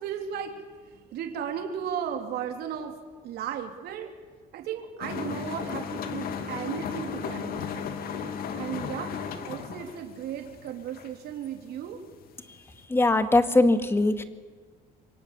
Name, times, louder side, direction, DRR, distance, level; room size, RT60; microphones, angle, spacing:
voice 1, 0.0-3.0 3.2-4.1 4.5-7.9 8.5-9.2 9.4-12.0, right 8 dB, 75° right, 4 dB, 3.4 m, -35 dB
sound 1, 5.0-11.8 12.1-12.8, left 7 dB, 65° left, 2.6 m, -35 dB
voice 2, 12.9-14.2, left 2 dB, 15° left, 9 dB, 2.0 m, -21 dB
26.5 x 24.0 x 8.4 m, 1.4 s
cardioid pair, 130°, 16 cm